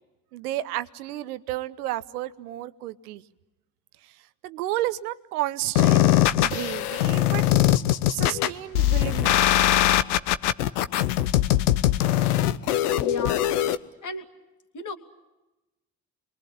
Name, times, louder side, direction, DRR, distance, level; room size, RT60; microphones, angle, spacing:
voice 1, 0.3-3.2 4.4-6.1 6.4-7.4 8.1-9.6, right 15 dB, 75° right, 1.0 m, -32 dB
sound 1, 5.8-13.8, left 13 dB, 75° left, 0.9 m, -21 dB
voice 2, 13.0-13.5 14.0-14.2 14.7-14.9, left 3 dB, 40° left, 2.8 m, -34 dB
30.0 x 23.0 x 8.6 m
figure-of-eight pair, 45°, 45 cm